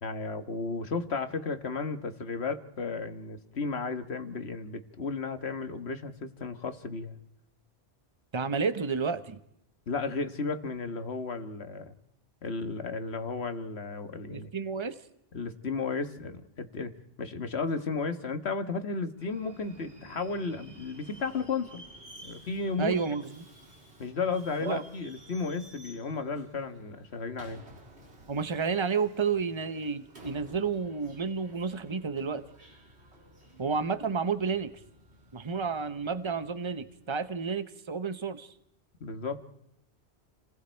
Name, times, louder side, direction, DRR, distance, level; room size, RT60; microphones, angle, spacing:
voice 1, 0.0-7.2 9.9-11.9 12.4-14.5 15.3-16.9 17.2-21.8 22.2-23.0 24.0-27.6 39.0-39.4, left 4 dB, 70° left, 1.7 m, -34 dB
voice 2, 8.3-9.4 14.3-14.9 22.8-23.3 24.6-24.8 28.3-32.4 33.6-34.8 35.3-38.5, right 5 dB, 25° right, 1.0 m, -31 dB
Subway metro underground, 19.2-37.6, right 1 dB, 75° right, 3.5 m, -54 dB
29.5 x 20.0 x 4.5 m
omnidirectional pair, 1.1 m